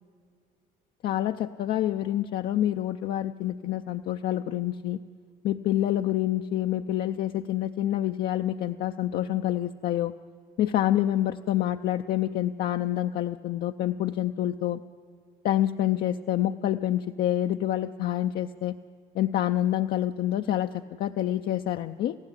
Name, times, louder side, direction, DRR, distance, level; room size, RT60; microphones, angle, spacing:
voice 1, 1.0-5.0 5.4-10.1 10.6-14.8 15.4-18.8 19.1-22.2, left 12 dB, 65° left, 5 dB, 0.6 m, -27 dB
28.0 x 15.5 x 9.8 m, 2.1 s
cardioid pair, 110°, 17 cm